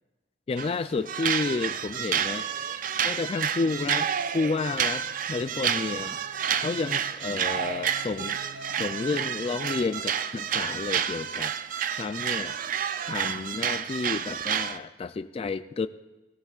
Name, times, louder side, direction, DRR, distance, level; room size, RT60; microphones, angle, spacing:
voice 1, 0.5-2.5 3.0-6.2 6.5-11.5 11.9-12.6 13.0-15.9, left 4 dB, 30° left, 11 dB, 0.3 m, -31 dB
sound 1, 0.6-0.8 1.1-14.8, right 8 dB, 45° right, 0.4 m, -30 dB
sound 2, 5.1-7.2 7.5-9.3 9.6-10.2, right 2 dB, 60° right, 1.1 m, -46 dB
18.0 x 16.0 x 2.4 m, 1.1 s
head